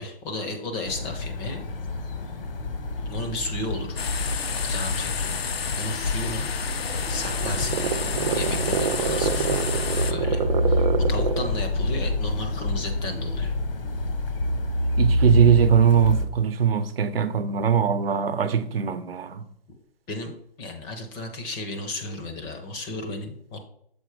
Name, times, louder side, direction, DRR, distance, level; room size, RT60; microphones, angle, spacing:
voice 1, 0.0-1.6 3.1-4.0 4.5-5.4 5.7-6.5 7.1-9.8 10.1-10.4 10.7-13.5 20.1-23.6, left 2 dB, 15° left, 0.6 m, -34 dB
sound 1, 0.8-16.3, left 1 dB, 65° left, 1.2 m, -27 dB
sound 2, 4.0-10.1, left 6 dB, 85° left, 0.7 m, -30 dB
sound 3, 6.6-11.6, right 8 dB, 55° right, 0.5 m, -27 dB
voice 2, 15.0-19.4, right 8 dB, 75° right, 0.8 m, -21 dB
6.8 x 4.1 x 4.8 m
hypercardioid pair, 145°, 30 cm